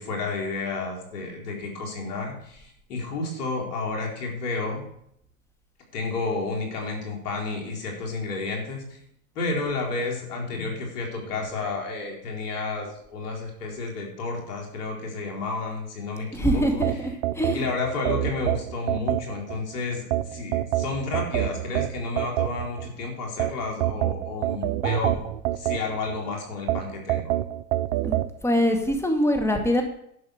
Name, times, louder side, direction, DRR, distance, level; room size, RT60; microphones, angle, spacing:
voice 1, 0.0-4.8 5.9-9.0 9.3-16.8 17.5-25.3 25.5-27.4, left 3 dB, 80° left, 0 dB, 4.4 m, -31 dB
voice 2, 16.3-17.7 28.0-29.8, equal, 5° left, 3 dB, 2.2 m, -24 dB
sound 1, 16.8-19.6 20.1-22.9 23.4-26.2 26.7-28.3, right 15 dB, 65° right, 0.8 m, -26 dB
11.5 x 7.0 x 6.7 m, 0.73 s
hypercardioid pair, 110°, 46 cm